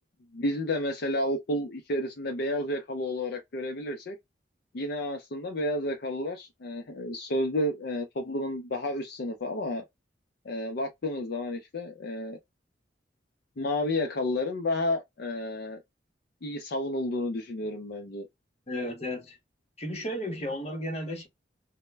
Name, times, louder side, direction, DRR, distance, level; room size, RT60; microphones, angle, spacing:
voice 1, 0.3-4.2 4.7-9.8 10.4-12.4 13.6-15.8 16.4-18.3, left 1 dB, 60° left, 0.5 m, -31 dB
voice 2, 18.7-19.4 19.8-21.3, equal, 35° left, 0.8 m, -33 dB
2.1 x 2.0 x 3.2 m
head